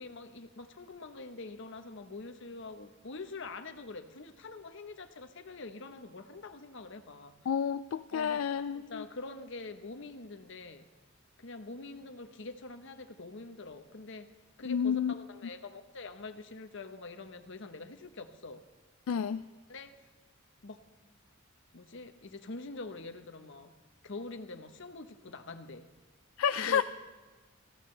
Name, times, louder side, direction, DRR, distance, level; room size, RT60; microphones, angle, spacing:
voice 1, 0.0-7.3 8.1-8.4 8.7-10.8 11.4-14.3 14.6-18.6 19.7-19.9 20.6-20.8 21.7-23.7 24.0-25.9 26.5-26.8, left 3 dB, 65° left, 7 dB, 1.0 m, -45 dB
voice 2, 7.5-9.0 14.7-15.1 19.1-19.4 26.4-26.8, left 7 dB, 85° left, 11 dB, 0.4 m, -30 dB
18.5 x 15.0 x 3.3 m, 1.3 s
head